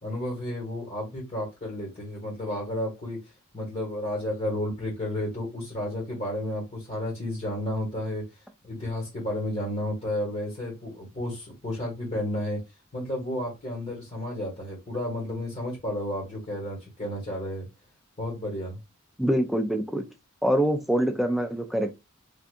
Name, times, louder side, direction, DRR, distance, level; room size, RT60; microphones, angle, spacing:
voice 1, 0.0-3.2 3.5-8.2 8.6-12.6 12.9-17.7 18.2-18.8, left 1 dB, 35° left, 1.4 m, -32 dB
voice 2, 19.2-20.0 20.4-21.9, equal, ahead, 0.4 m, -24 dB
3.5 x 2.6 x 2.5 m
head